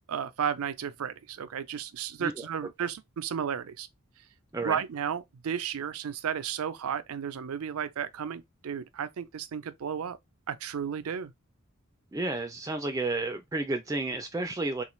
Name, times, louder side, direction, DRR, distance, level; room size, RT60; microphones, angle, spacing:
voice 1, 0.1-3.9 4.6-10.2 10.5-11.3, right 8 dB, 80° right, 0.4 m, -33 dB
voice 2, 12.1-14.8, right 2 dB, 15° right, 0.3 m, -31 dB
3.6 x 2.4 x 3.0 m
head